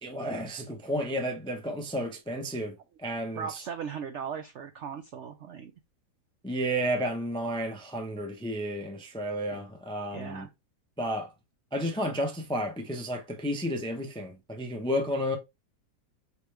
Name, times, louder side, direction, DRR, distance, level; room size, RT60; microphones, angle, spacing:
voice 1, 0.0-2.7 3.0-3.4 6.4-10.5 11.0-11.3 11.7-15.4, equal, 10° left, 0.3 m, -32 dB
voice 2, 3.3-5.7 9.5-9.6 10.1-10.5, right 7 dB, 75° right, 0.6 m, -38 dB
5.1 x 3.3 x 3.2 m
omnidirectional pair, 1.8 m